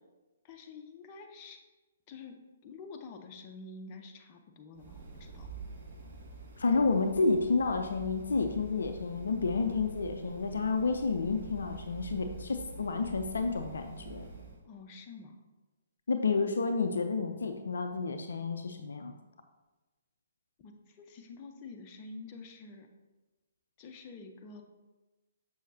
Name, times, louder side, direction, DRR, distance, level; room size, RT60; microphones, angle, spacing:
voice 1, 0.4-1.6 2.1-2.4 2.6-5.5 14.6-15.4 20.6-22.9 23.8-24.6, left 4 dB, 30° left, 3 dB, 0.7 m, -48 dB
sound 1, 4.7-14.6, right 3 dB, 50° right, 1.4 m, -46 dB
voice 2, 6.6-14.3 16.1-19.1, left 4 dB, 65° left, 6 dB, 0.5 m, -30 dB
6.9 x 6.3 x 2.7 m, 1.2 s
figure-of-eight pair, 130°, 0 cm